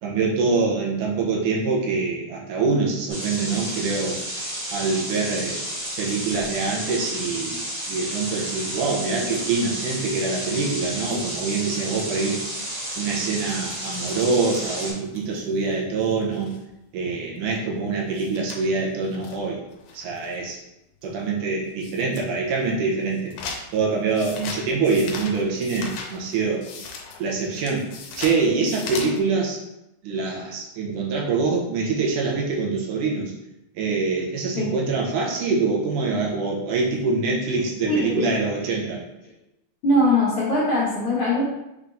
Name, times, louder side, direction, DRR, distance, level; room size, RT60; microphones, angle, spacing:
voice 1, 0.0-4.2 4.7-5.6 6.0-12.4 13.0-16.5 16.9-19.6 19.9-20.6 21.0-23.3 23.7-26.7 27.2-27.9 28.2-29.6 30.0-33.3 33.8-39.0, right 4 dB, 80° right, -2 dB, 2.3 m, -25 dB
sound 1, 3.1-14.9, right 1 dB, 45° right, 1.2 m, -31 dB
sound 2, 12.2-16.7 17.1-17.2 17.4-17.5 17.8-17.9 18.1-20.5 21.0-21.2 21.7-22.3 22.6-29.2, left 4 dB, 85° left, 2.2 m, -39 dB
voice 2, 37.9-38.3 39.8-41.4, left 1 dB, 55° left, -9 dB, 1.7 m, -21 dB
5.8 x 3.5 x 2.6 m, 0.90 s
omnidirectional pair, 3.6 m